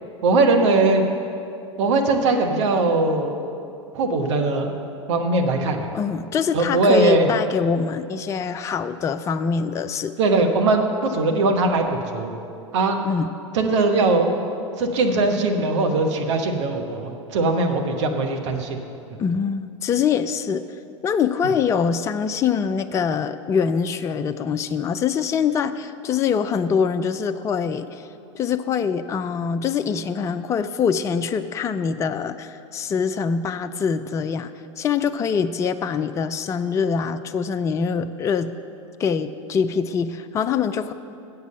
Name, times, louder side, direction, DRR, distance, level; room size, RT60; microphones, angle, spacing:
voice 1, 0.2-1.0 1.8-3.3 3.9-4.7 5.1-5.9 6.5-7.3 10.2-12.3 12.7-13.0 13.5-14.4 14.8-18.8, right 3 dB, 65° right, 4 dB, 1.1 m, -20 dB
voice 2, 5.9-10.1 13.0-13.3 19.2-20.6 21.0-28.1 28.3-34.5 34.8-38.6 39.0-40.9, left 6 dB, 20° left, 10 dB, 0.3 m, -24 dB
8.2 x 6.8 x 7.5 m, 2.6 s
figure-of-eight pair, 90°, 16 cm